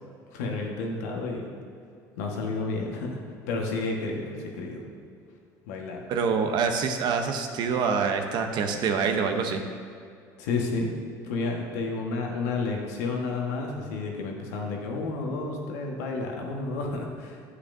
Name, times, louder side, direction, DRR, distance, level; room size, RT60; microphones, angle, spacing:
voice 1, 0.3-1.5 2.2-3.2 3.5-4.8 5.7-6.0 10.4-17.5, left 3 dB, 85° left, 0 dB, 1.4 m, -31 dB
voice 2, 6.1-9.6, right 5 dB, 60° right, 5 dB, 0.8 m, -26 dB
9.8 x 8.2 x 2.7 m, 2.5 s
supercardioid pair, 95°, 9 cm